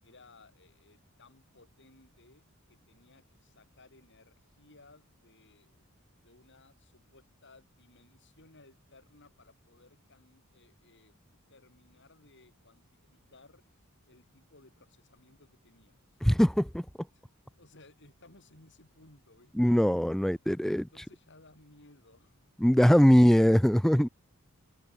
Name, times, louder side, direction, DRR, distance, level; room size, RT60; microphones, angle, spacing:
voice 1, 0.0-5.9 6.2-16.0 17.1-17.3 17.6-19.8 20.7-22.4, left 2 dB, 55° left, 7.9 m, -60 dB
voice 2, 16.2-16.9 19.6-20.8 22.6-24.1, equal, ahead, 0.4 m, -21 dB
head